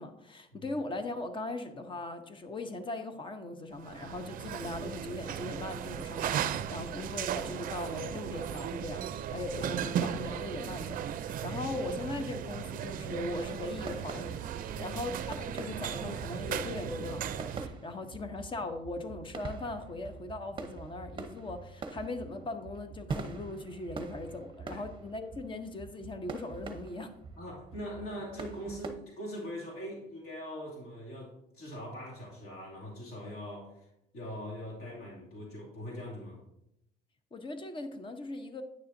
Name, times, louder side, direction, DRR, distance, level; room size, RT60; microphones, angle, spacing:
voice 1, 0.0-27.1 37.3-38.6, left 2 dB, 30° left, 8 dB, 0.8 m, -39 dB
sound 1, 3.8-17.7, right 9 dB, 55° right, 0.4 m, -36 dB
sound 2, 13.8-28.9, right 4 dB, 30° right, 0.8 m, -44 dB
voice 2, 27.4-33.9 34.1-36.4, equal, 65° left, -4 dB, 2.5 m, -42 dB
9.3 x 6.8 x 2.6 m, 0.81 s
cardioid pair, 110°, 17 cm